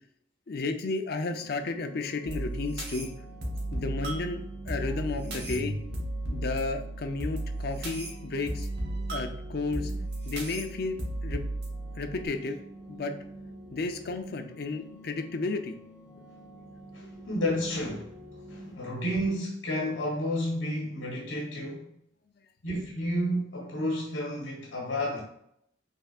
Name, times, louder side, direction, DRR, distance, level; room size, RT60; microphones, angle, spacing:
voice 1, 0.5-3.1 3.7-5.8 6.3-8.7 9.1-9.9 10.2-11.4 12.0-12.6 12.9-13.1 13.7-15.7 17.0-17.1, left 3 dB, 55° left, 0.5 m, -33 dB
sound 1, 1.3-18.7, equal, 10° right, 1.2 m, -48 dB
sound 2, 2.3-12.3, right 1 dB, 60° right, 1.0 m, -35 dB
voice 2, 16.9-21.9 22.6-25.2, equal, 75° left, 1.1 m, -31 dB
5.5 x 3.3 x 2.4 m
head